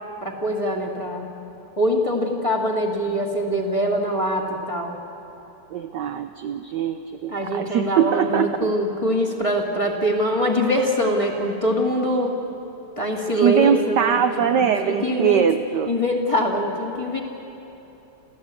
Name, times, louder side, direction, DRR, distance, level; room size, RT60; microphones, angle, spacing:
voice 1, 0.2-1.3 1.8-5.0 7.3-12.3 13.0-14.2 14.6-15.5 15.9-17.2, equal, 15° left, 0 dB, 2.0 m, -23 dB
voice 2, 5.7-8.5 13.4-15.9, right 8 dB, 70° right, 8 dB, 1.1 m, -22 dB
28.5 x 15.0 x 8.4 m, 3.0 s
omnidirectional pair, 2.4 m